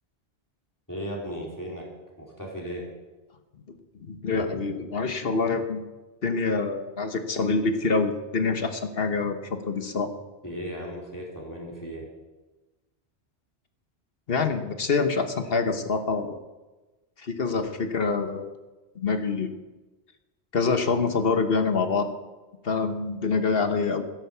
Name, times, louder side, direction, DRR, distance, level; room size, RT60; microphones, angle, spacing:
voice 1, 0.9-1.9 2.2-2.9 10.4-12.1, equal, 15° left, -3 dB, 3.8 m, -36 dB
voice 2, 3.7-5.9 6.2-10.1 14.3-16.4 17.2-18.5 18.9-19.5 20.5-22.1 22.6-24.0, left 4 dB, 55° left, 8 dB, 1.4 m, -26 dB
13.5 x 10.5 x 6.9 m, 1.2 s
omnidirectional pair, 1.2 m